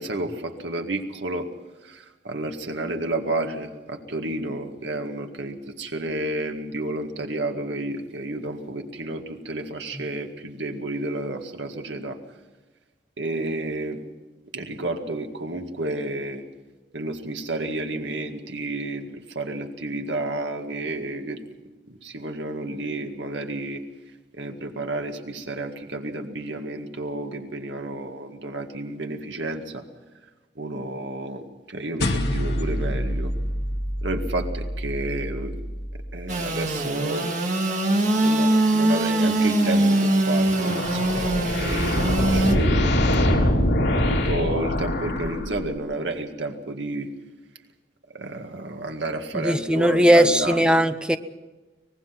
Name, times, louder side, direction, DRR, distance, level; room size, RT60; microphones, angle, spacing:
voice 1, 0.0-1.5 1.8-12.2 13.2-14.0 14.5-16.4 16.9-21.4 21.9-23.8 24.4-29.8 30.6-33.3 34.0-35.6 36.1-37.3 37.9-43.4 43.9-47.1 48.1-50.8, right 2 dB, 85° right, 5 dB, 2.0 m, -31 dB
sound 1, 32.0-36.6, equal, 65° left, 1.8 m, -28 dB
Engine / Sawing, 36.3-42.6, right 1 dB, 40° right, 2.1 m, -22 dB
sound 2, 40.4-45.9, left 1 dB, 80° left, 3.7 m, -23 dB
voice 2, 49.3-51.2, equal, 5° right, 10 dB, 0.7 m, -19 dB
24.0 x 19.5 x 5.9 m, 1.2 s
head